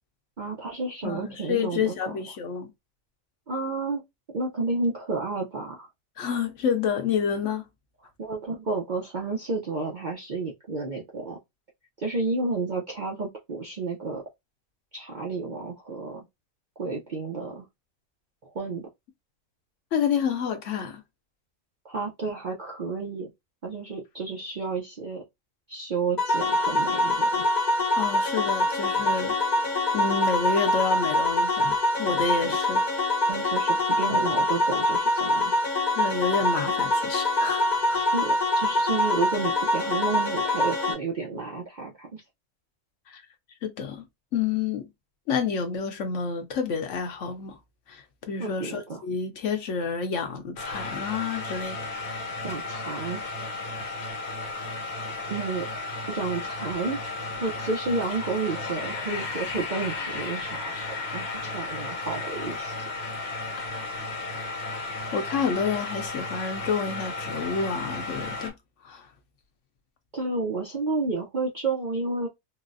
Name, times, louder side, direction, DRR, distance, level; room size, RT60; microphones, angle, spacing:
voice 1, 0.4-2.2 3.5-4.0 4.3-5.9 8.2-11.4 12.0-14.2 14.9-16.2 16.8-17.7 18.4-18.9 21.8-23.3 23.6-25.2 25.7-27.5 32.5-32.6 33.3-35.5 37.9-42.2 48.4-49.0 52.4-53.2 55.3-55.7 56.1-62.9 70.1-72.3, right 3 dB, 55° right, 0.5 m, -31 dB
voice 2, 1.0-2.7 6.2-7.6 19.9-21.0 28.0-29.3 29.9-32.8 34.1-34.3 36.0-38.0 43.1-43.2 43.6-44.0 44.3-44.9 45.3-47.6 47.9-51.9 65.1-68.5 68.8-69.1, left 6 dB, 65° left, 0.9 m, -29 dB
sound 1, 26.2-40.9, left 2 dB, 40° left, 0.8 m, -24 dB
sound 2, 50.6-68.5, left 3 dB, 80° left, 1.4 m, -34 dB
3.9 x 2.0 x 2.5 m
omnidirectional pair, 1.5 m